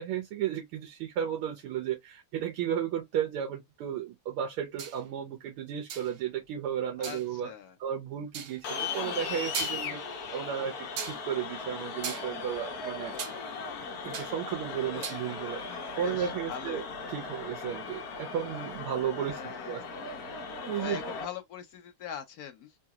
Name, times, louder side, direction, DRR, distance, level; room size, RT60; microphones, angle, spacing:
voice 1, 0.0-7.5 7.8-13.1 14.0-15.6 16.0-19.8 20.7-21.0, right 9 dB, 80° right, 1.7 m, -34 dB
sound 1, 4.8-5.0 5.9-6.2 7.0-7.3 8.3-8.6 9.2-9.3 9.5-10.1 11.0-11.2 12.0-13.4 13.7-14.4 14.7-15.2, right 8 dB, 65° right, 1.1 m, -38 dB
voice 2, 7.0-7.8 13.1-13.4 14.6-15.1 16.0-16.9 19.2-19.9 20.7-22.8, left 9 dB, 85° left, 0.8 m, -43 dB
sound 2, 8.6-21.3, left 4 dB, 55° left, 1.2 m, -38 dB
3.9 x 2.7 x 2.3 m
omnidirectional pair, 2.4 m